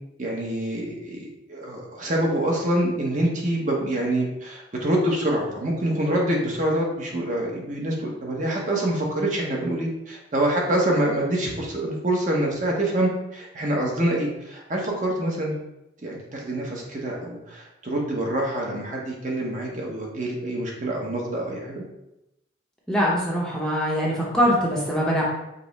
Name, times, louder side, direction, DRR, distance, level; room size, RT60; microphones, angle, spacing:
voice 1, 0.2-15.6 16.0-21.8, right 1 dB, 40° right, -2 dB, 0.8 m, -26 dB
voice 2, 22.9-25.2, equal, 5° left, -5 dB, 0.6 m, -23 dB
5.2 x 2.0 x 4.0 m, 0.90 s
head